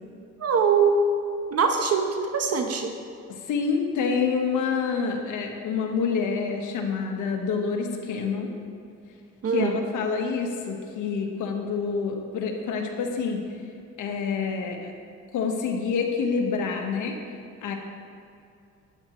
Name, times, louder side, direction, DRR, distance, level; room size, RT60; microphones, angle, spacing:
voice 1, 0.4-1.0 1.5-2.9 9.4-9.8, right 5 dB, 55° right, 4 dB, 1.1 m, -22 dB
voice 2, 3.3-8.5 9.5-13.4 14.0-14.9 15.3-17.2 17.6-17.7, left 5 dB, 80° left, 2 dB, 1.4 m, -27 dB
12.5 x 10.0 x 3.1 m, 2.5 s
cardioid pair, 90°, 30 cm